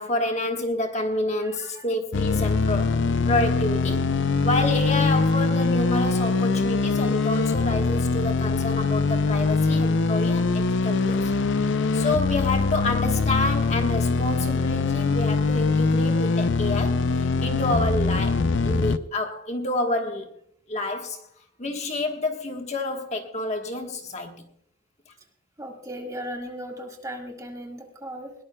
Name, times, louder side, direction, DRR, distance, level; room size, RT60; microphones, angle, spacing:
voice 1, 0.0-4.1 4.4-11.3 11.9-20.3 20.7-21.3 21.6-24.5, left 2 dB, 35° left, 3 dB, 1.3 m, -28 dB
voice 2, 1.4-1.8 25.6-28.3, equal, 15° right, 2 dB, 1.8 m, -37 dB
sound 1, 2.1-19.0, left 4 dB, 60° left, 0.5 m, -23 dB
21.0 x 19.0 x 2.3 m, 0.67 s
head